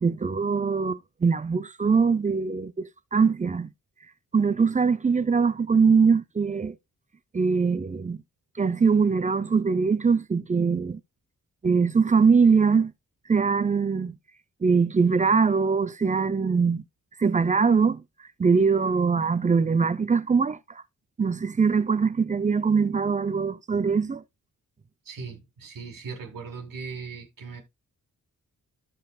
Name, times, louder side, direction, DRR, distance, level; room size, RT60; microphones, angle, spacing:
voice 1, 0.0-3.7 4.3-6.8 7.3-8.2 8.6-11.0 11.6-12.9 13.3-14.1 14.6-16.8 17.2-18.0 18.4-20.6 21.2-24.2, right 5 dB, 25° right, 0.4 m, -22 dB
voice 2, 25.0-27.6, right 5 dB, 80° right, 2.1 m, -38 dB
14.0 x 5.2 x 2.2 m
wide cardioid pair, 125°, 33 cm